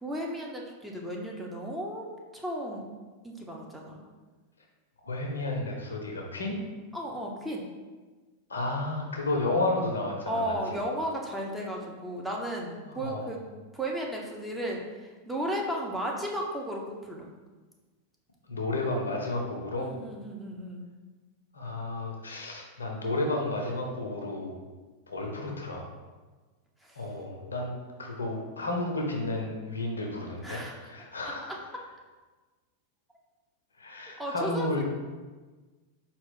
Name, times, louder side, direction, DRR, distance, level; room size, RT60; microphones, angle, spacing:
voice 1, 0.0-2.9 3.2-4.0 6.9-7.7 10.3-13.4 13.7-17.3 19.8-20.8 26.8-27.0 30.4-30.8 31.2-31.6 34.2-34.8, right 1 dB, 5° right, -2 dB, 0.6 m, -34 dB
voice 2, 5.0-6.6 8.5-10.4 10.7-10.8 12.9-13.3 18.5-19.9 21.5-24.5 25.1-25.9 27.0-27.7 28.0-31.5 33.8-34.8, left 2 dB, 75° left, 1 dB, 0.6 m, -32 dB
4.3 x 2.3 x 3.6 m, 1.3 s
figure-of-eight pair, 90°, 0 cm